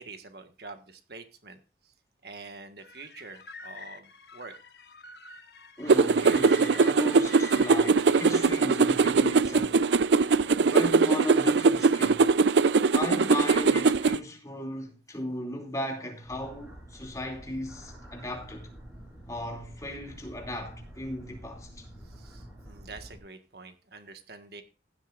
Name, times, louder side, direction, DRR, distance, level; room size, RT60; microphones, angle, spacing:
voice 1, 0.0-1.9 2.2-4.5 22.0-24.6, right 3 dB, 60° right, 1.6 m, -46 dB
sound 1, 2.8-7.9, left 5 dB, 65° left, 1.4 m, -46 dB
voice 2, 5.8-9.9 10.6-12.3 12.9-18.7 19.3-21.9, left 1 dB, 20° left, 2.8 m, -36 dB
sound 2, 5.9-14.2, right 4 dB, 80° right, 0.5 m, -22 dB
sound 3, 16.2-23.2, right 1 dB, 5° right, 6.2 m, -48 dB
16.0 x 11.5 x 2.5 m
head